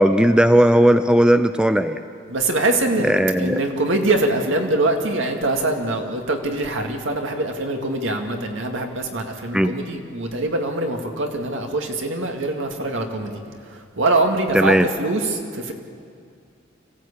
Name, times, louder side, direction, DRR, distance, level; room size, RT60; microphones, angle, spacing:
voice 1, 0.0-2.0 3.0-3.6 9.5-9.8 14.5-14.9, right 1 dB, 5° right, 10 dB, 0.5 m, -16 dB
voice 2, 2.3-3.1 3.4-13.4 13.7-15.7, right 2 dB, 65° right, 3 dB, 2.3 m, -23 dB
25.5 x 16.0 x 8.6 m, 2.3 s
head